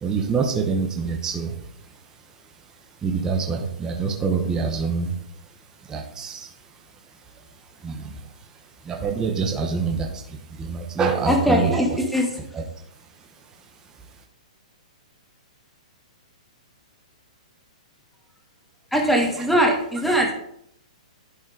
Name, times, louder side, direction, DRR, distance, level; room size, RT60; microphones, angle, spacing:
voice 1, 0.0-1.5 3.0-5.1 5.9-6.5 7.8-8.1 8.9-10.1 10.6-11.7, right 5 dB, 15° right, 2 dB, 1.0 m, -25 dB
voice 2, 11.3-12.4 18.9-20.3, equal, ahead, 1 dB, 1.7 m, -21 dB
11.5 x 4.3 x 4.9 m, 0.71 s
hypercardioid pair, 145°, 4 cm